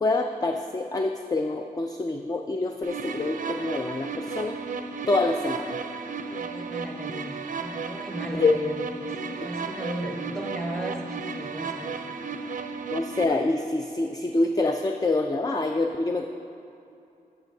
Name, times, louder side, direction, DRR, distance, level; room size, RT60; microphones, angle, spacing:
voice 1, 0.0-4.6 5.1-5.8 8.4-8.6 12.9-16.3, left 2 dB, 20° left, 4 dB, 0.4 m, -26 dB
sound 1, 2.8-13.2, right 4 dB, 55° right, 0.5 m, -34 dB
voice 2, 6.2-12.2, right 1 dB, 5° left, 0 dB, 1.2 m, -36 dB
8.9 x 8.8 x 2.7 m, 2.6 s
cardioid pair, 65°, 17 cm